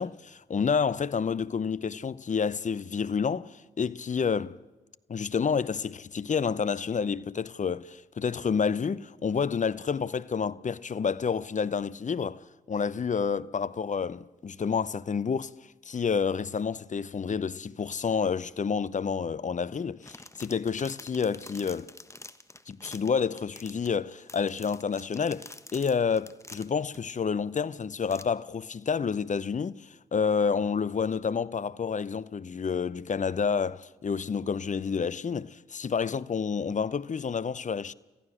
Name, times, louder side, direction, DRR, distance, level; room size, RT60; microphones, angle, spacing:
voice 1, 0.0-4.6 5.1-15.5 15.9-21.9 22.7-37.9, left 6 dB, 40° left, 0.7 m, -29 dB
sound 1, 19.8-27.0 27.6-27.7 28.1-28.2, left 2 dB, 15° left, 1.4 m, -48 dB
27.5 x 14.5 x 6.4 m
hypercardioid pair, 40°, 20 cm